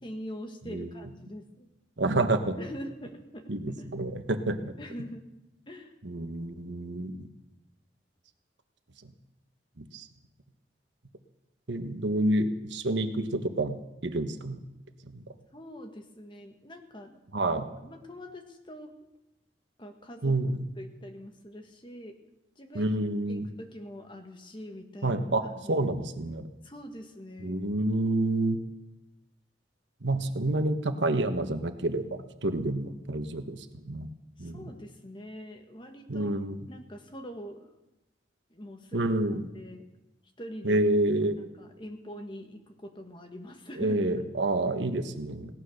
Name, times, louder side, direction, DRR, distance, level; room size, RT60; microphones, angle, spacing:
voice 1, 0.0-1.7 2.6-3.9 4.8-5.3 5.7-5.9 15.5-17.2 17.6-18.9 19.8-20.4 20.8-22.2 22.5-22.9 23.3-25.8 26.6-27.6 34.4-36.4 36.7-37.7 38.5-39.0 39.5-39.9 40.4-40.8 41.4-44.0, equal, 25° left, 5 dB, 1.6 m, -44 dB
voice 2, 2.0-2.6 3.5-4.7 6.0-7.3 9.8-10.1 11.7-13.8 14.0-14.6 15.1-15.2 17.3-17.6 20.2-20.6 22.7-23.5 25.0-26.5 27.4-28.6 30.0-33.6 33.8-34.1 34.4-34.6 36.1-36.7 38.9-39.4 40.6-41.4 43.8-45.5, right 2 dB, 80° right, 8 dB, 1.3 m, -28 dB
17.0 x 12.0 x 6.5 m, 0.95 s
head